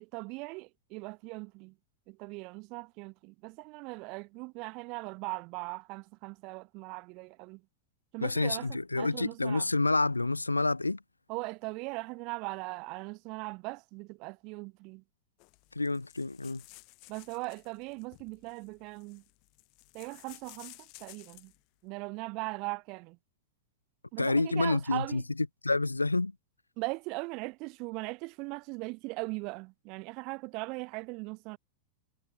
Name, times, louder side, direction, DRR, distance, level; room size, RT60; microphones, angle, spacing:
voice 1, 0.0-1.7 2.1-7.6 8.1-9.7 11.3-15.0 17.1-19.2 19.9-21.5 21.8-23.2 24.1-25.2 26.8-31.6, right 27 dB, 40° right, 1.0 m, -39 dB
voice 2, 8.2-11.0 15.8-16.6 24.2-25.2 25.6-26.3, left 2 dB, 80° left, 0.7 m, -28 dB
sound 1, 15.4-21.6, left 31 dB, 45° left, 4.1 m, -55 dB
figure-of-eight pair, 90°, 0 cm